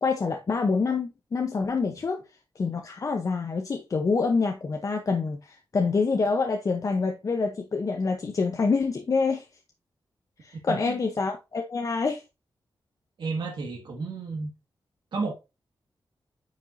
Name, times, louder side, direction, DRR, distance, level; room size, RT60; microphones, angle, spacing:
voice 1, 0.0-2.2 2.6-9.5 10.4-12.2, left 4 dB, 40° left, 0.8 m, -26 dB
voice 2, 10.7-11.0 13.2-14.5 15.1-15.3, right 4 dB, 75° right, 1.9 m, -31 dB
9.1 x 5.3 x 2.7 m
wide cardioid pair, 160°, 8 cm